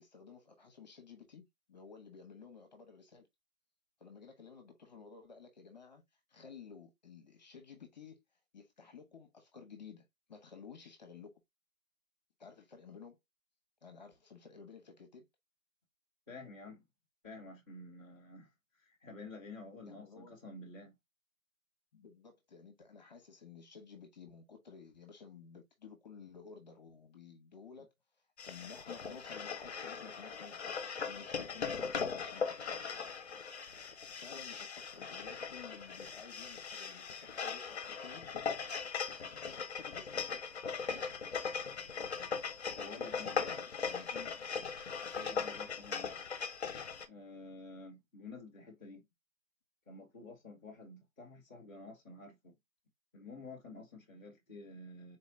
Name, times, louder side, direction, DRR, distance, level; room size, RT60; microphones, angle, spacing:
voice 1, 0.0-3.3 4.0-6.0 6.3-8.2 8.5-11.4 12.4-13.2 13.8-15.3 19.9-20.3 21.9-27.9 28.4-32.8 34.2-38.5 39.4-40.4 40.9-41.2 43.2-44.7 45.1-45.4, left 5 dB, 30° left, 1.1 m, -54 dB
voice 2, 16.3-16.8 17.2-20.9 42.7-43.3 45.4-46.1 47.1-49.0 49.9-52.6 53.1-55.2, left 2 dB, 10° right, 0.7 m, -50 dB
sound 1, 28.4-47.1, left 5 dB, 55° left, 0.8 m, -39 dB
4.1 x 2.8 x 3.8 m
hypercardioid pair, 170°, 41 cm